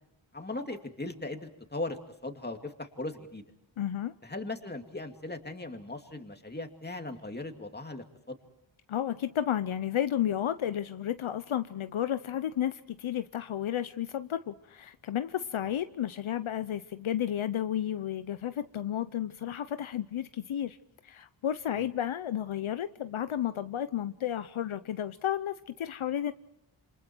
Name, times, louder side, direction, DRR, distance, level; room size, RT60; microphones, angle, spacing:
voice 1, 0.3-3.4 4.2-8.4 15.6-15.7 21.7-21.9, left 2 dB, 20° left, 4 dB, 2.5 m, -38 dB
voice 2, 3.8-4.1 8.9-20.8 21.0-26.3, left 10 dB, 75° left, 12 dB, 0.8 m, -32 dB
27.5 x 26.0 x 4.6 m, 0.78 s
wide cardioid pair, 80°, 49 cm